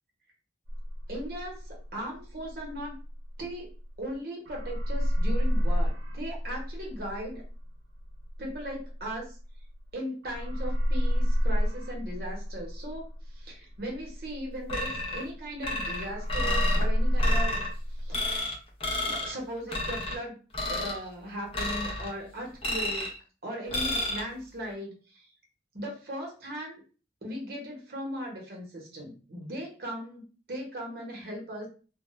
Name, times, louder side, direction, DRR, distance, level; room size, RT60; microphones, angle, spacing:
sound 1, 0.7-4.2 4.5-9.9 10.2-15.7 16.0-18.4, equal, 80° right, 0.4 m, -29 dB
voice 1, 1.1-3.0 3.4-3.7 4.0-7.4 8.4-9.4 9.9-13.1 13.3-17.6 18.0-18.5 19.1-20.4 20.7-23.1 23.4-25.3 25.7-26.8 27.2-31.7, equal, 60° right, -1 dB, 0.9 m, -38 dB
sound 2, 14.7-15.3 15.6-16.8 17.2-17.7 18.1-18.5 18.8-19.3 19.7-20.2 20.5-21.0 21.5-22.1 22.6-23.2 23.7-24.2, left 1 dB, 30° left, 0.6 m, -31 dB
2.1 x 2.1 x 3.0 m, 0.37 s
head